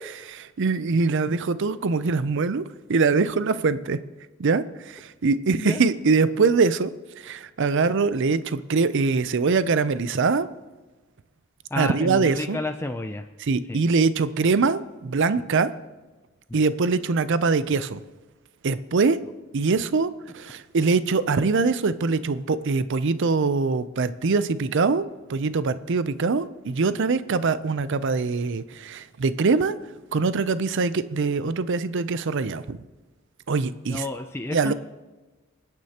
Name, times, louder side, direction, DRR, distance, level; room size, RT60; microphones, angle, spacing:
voice 1, 0.0-2.6 2.9-4.0 4.4-6.9 7.2-10.5 11.8-12.6 13.5-15.7 16.5-18.0 18.6-19.2 19.5-29.8 30.1-32.8 33.5-34.0 34.5-34.7, right 4 dB, 60° right, 14 dB, 0.5 m, -23 dB
voice 2, 11.7-13.2 13.7-13.8 16.5-16.6 33.9-34.7, left 2 dB, 10° left, 6 dB, 0.4 m, -31 dB
26.0 x 9.7 x 2.9 m, 1.2 s
head